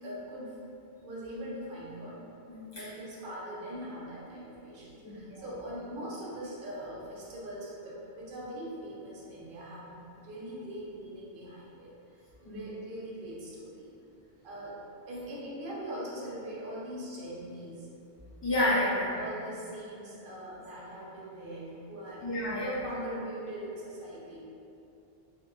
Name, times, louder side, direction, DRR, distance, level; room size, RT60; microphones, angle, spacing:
voice 1, 0.0-0.6 1.0-2.2 2.7-13.9 14.4-14.8 15.1-17.9 18.7-22.3 22.6-24.4, right 1 dB, 60° right, -5 dB, 0.7 m, -41 dB
voice 2, 2.5-2.8 5.0-5.4 12.5-12.6 18.4-19.1 22.2-22.7, left 1 dB, 35° left, -10 dB, 0.4 m, -29 dB
2.7 x 2.6 x 2.3 m, 2.7 s
omnidirectional pair, 1.1 m